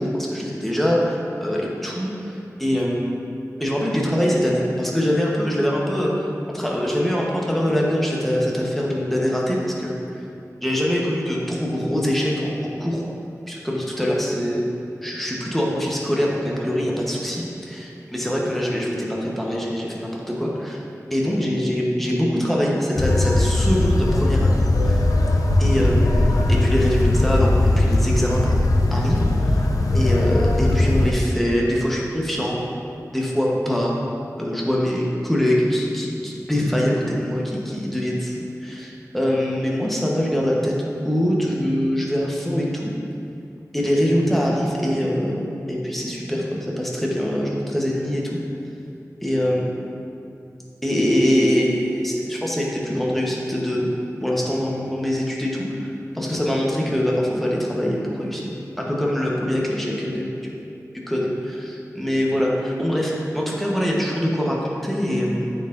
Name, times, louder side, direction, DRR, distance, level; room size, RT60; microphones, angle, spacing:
voice 1, 0.0-3.1 3.6-10.2 10.6-13.0 13.5-14.6 15.0-20.8 21.1-24.6 24.8-25.0 25.6-29.7 29.9-32.6 33.1-33.9 34.4-40.7 41.0-42.9 43.7-48.4 49.2-49.7 50.8-53.9 54.2-58.5 58.8-60.5 61.1-65.5, equal, 5° left, -3 dB, 1.0 m, -23 dB
sound 1, 23.0-31.1, left 2 dB, 70° left, 0.5 m, -19 dB
8.8 x 4.7 x 2.6 m, 2.7 s
wide cardioid pair, 75°, 6 cm